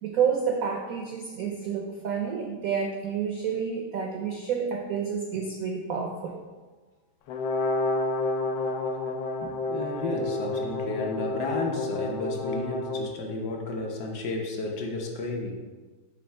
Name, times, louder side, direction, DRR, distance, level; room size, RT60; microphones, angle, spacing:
voice 1, 0.0-6.4, right 6 dB, 75° right, 2 dB, 0.8 m, -29 dB
Brass instrument, 7.3-13.1, left 2 dB, 85° left, 1.5 m, -30 dB
voice 2, 9.4-15.6, left 2 dB, 65° left, 1 dB, 1.3 m, -32 dB
6.7 x 3.1 x 5.4 m, 1.3 s
omnidirectional pair, 2.2 m